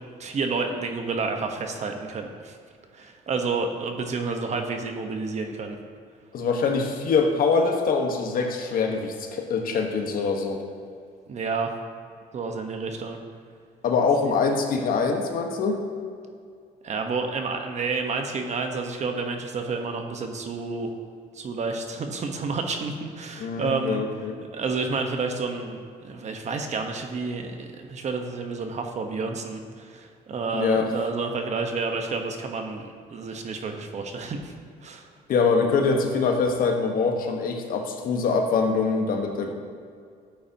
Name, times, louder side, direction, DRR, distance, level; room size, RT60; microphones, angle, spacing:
voice 1, 0.2-2.6 2.9-5.8 11.3-11.7 12.3-13.2 14.2-14.3 16.8-20.9 21.3-24.0 24.5-34.5 34.8-35.1, right 4 dB, 40° right, 4 dB, 1.2 m, -30 dB
voice 2, 6.3-10.6 13.8-15.8 23.4-24.4 30.5-30.9 35.3-39.5, left 4 dB, 60° left, 3 dB, 1.3 m, -24 dB
13.5 x 8.5 x 2.9 m, 2.3 s
cardioid pair, 110°, 17 cm